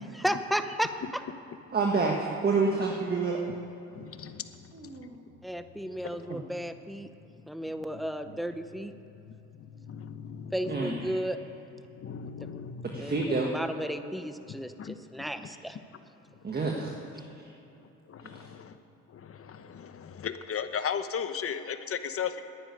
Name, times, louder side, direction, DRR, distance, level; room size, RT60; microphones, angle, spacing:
voice 1, 0.1-1.2 5.4-7.1 7.5-8.9 10.5-11.4 12.4-12.6 13.0-15.8, equal, ahead, 9 dB, 0.9 m, -34 dB
voice 2, 1.7-3.4 4.7-5.2 6.3-6.4 10.7-11.2 12.8-13.5 15.4-15.5 16.4-17.5 18.2-18.5, right 4 dB, 30° right, 0 dB, 1.6 m, -29 dB
voice 3, 3.9-4.4 4.8-5.1 6.0-6.3 8.3-8.4 9.3-11.2 12.0-13.4 14.8-15.0 15.4-15.5 18.1-18.8 19.1-22.4, left 7 dB, 50° left, 10 dB, 1.0 m, -37 dB
11.5 x 10.0 x 9.7 m, 3.0 s
cardioid pair, 90°, 30 cm